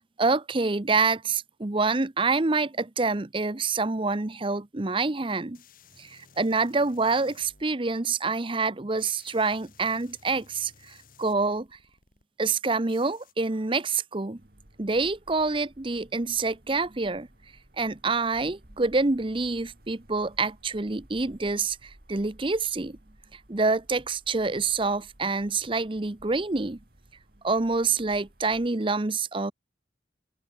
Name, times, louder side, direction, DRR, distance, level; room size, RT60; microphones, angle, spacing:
voice 1, 0.2-5.6 6.0-11.7 12.4-14.4 14.8-17.3 17.8-23.0 23.3-26.8 27.4-29.5, right 3 dB, 30° right, 0.8 m, -27 dB
sound 1, 5.5-7.6 9.0-12.2 12.9-13.3, left 5 dB, 50° left, 7.4 m, -57 dB
sound 2, 14.3-28.7, right 1 dB, 55° right, 3.1 m, -56 dB
head